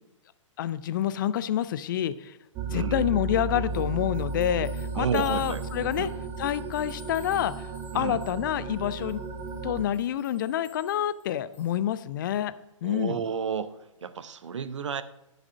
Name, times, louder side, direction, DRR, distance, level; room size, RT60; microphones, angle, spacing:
voice 1, 0.6-2.4 2.7-6.1 6.4-7.7 7.9-9.2 9.6-12.5 12.8-13.2, left 11 dB, 40° left, 15 dB, 0.4 m, -28 dB
sound 1, 2.6-9.8, right 4 dB, 20° right, 0.7 m, -34 dB
sound 2, 3.7-11.8, left 2 dB, 10° left, 2.0 m, -55 dB
voice 2, 4.9-5.6 6.0-6.1 7.9-8.2 12.8-15.0, right 7 dB, 65° right, 14 dB, 0.7 m, -31 dB
11.0 x 4.9 x 6.2 m, 0.88 s
figure-of-eight pair, 115°, 17 cm